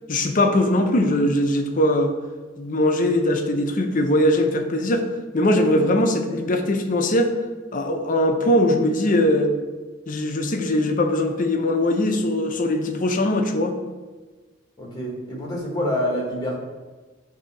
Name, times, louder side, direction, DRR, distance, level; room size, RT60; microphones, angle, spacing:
voice 1, 0.1-2.2 2.6-5.1 5.3-7.3 7.7-9.5 10.1-13.8, left 1 dB, 45° left, 5 dB, 0.6 m, -21 dB
voice 2, 14.8-16.6, equal, 20° left, -1 dB, 1.3 m, -26 dB
7.7 x 2.8 x 4.7 m, 1.3 s
head